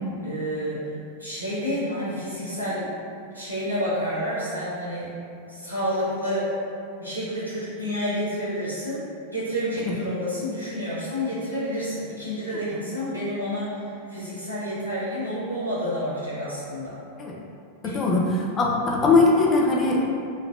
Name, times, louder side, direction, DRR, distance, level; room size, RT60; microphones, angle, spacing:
voice 1, 0.2-0.8 1.2-2.9 3.3-5.1 5.5-6.5 7.0-17.0 17.8-18.1, equal, 85° right, -11 dB, 1.0 m, -29 dB
voice 2, 17.8-18.2 18.6-20.0, left 3 dB, 25° left, -3 dB, 0.4 m, -20 dB
3.3 x 2.2 x 2.3 m, 2.6 s
figure-of-eight pair, 90°, 0 cm